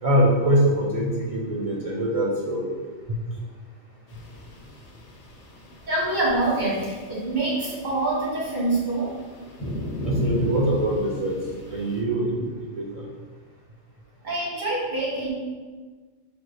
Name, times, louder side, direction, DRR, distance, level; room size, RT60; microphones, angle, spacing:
voice 1, 0.0-2.8 3.1-3.2 10.0-11.3 11.7-13.1, equal, 55° right, -4 dB, 0.4 m, -23 dB
sound 1, 4.1-12.0, left 1 dB, 60° left, 0.4 m, -37 dB
voice 2, 5.9-9.1 14.2-15.3, right 2 dB, 40° right, -7 dB, 1.4 m, -25 dB
5.2 x 3.1 x 2.2 m, 1.4 s
omnidirectional pair, 1.3 m